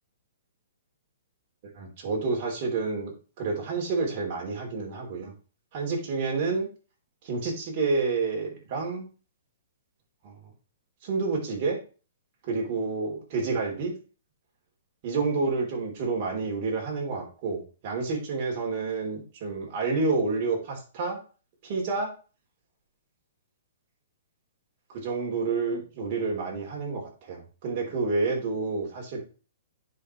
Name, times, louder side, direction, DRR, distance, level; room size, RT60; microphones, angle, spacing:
voice 1, 1.7-5.3 5.7-6.7 7.2-9.1 10.2-10.4 11.0-11.8 12.4-13.9 15.0-21.2 21.6-22.1 24.9-29.2, right 4 dB, 40° right, -1 dB, 3.9 m, -29 dB
10.5 x 5.5 x 3.3 m, 0.35 s
hypercardioid pair, 155°, 0 cm